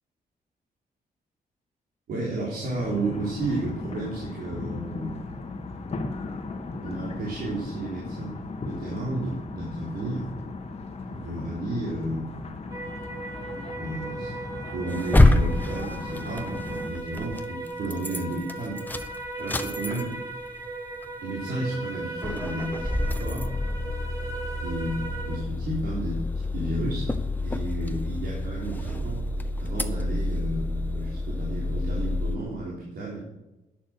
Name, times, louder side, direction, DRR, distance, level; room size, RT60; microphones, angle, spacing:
voice 1, 2.1-5.3 6.8-10.3 11.1-12.4 13.7-18.8 19.4-20.2 21.2-23.5 24.6-29.2 29.6-33.2, right 1 dB, 80° right, -5 dB, 3.9 m, -32 dB
sound 1, 2.7-16.9, left 3 dB, 40° left, 1.6 m, -37 dB
sound 2, 12.7-25.4, right 2 dB, 20° right, 1.8 m, -37 dB
sound 3, 14.9-17.5 17.8-18.2 18.5-20.3 20.7-20.8 21.0-21.1 21.7-21.9 22.2-32.4, left 2 dB, 10° left, 0.9 m, -27 dB
11.0 x 10.0 x 6.6 m, 1.0 s
wide cardioid pair, 130°, 16 cm